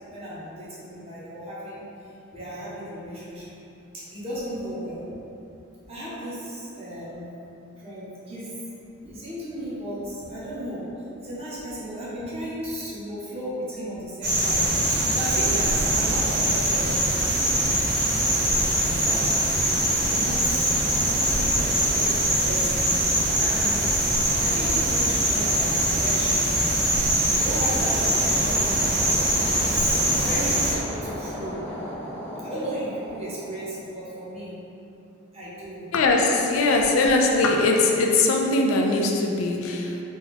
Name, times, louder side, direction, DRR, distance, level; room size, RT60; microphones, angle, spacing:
voice 1, 0.1-1.8 2.3-3.5 3.9-5.1 5.9-7.3 7.8-8.5 9.0-10.9 11.2-17.0 18.7-19.7 20.1-22.9 23.4-23.9 24.4-26.5 26.9-27.0 27.3-29.2 29.6-31.6 32.4-34.6 35.3-35.9, right 1 dB, 30° right, -9 dB, 0.7 m, -35 dB
sound 1, 14.2-30.7, right 1 dB, 55° right, 1.0 m, -23 dB
sound 2, 27.8-34.3, left 1 dB, 5° left, 0.4 m, -36 dB
voice 2, 35.9-40.0, left 2 dB, 75° left, 1 dB, 0.3 m, -21 dB
3.0 x 2.3 x 3.4 m, 2.9 s
head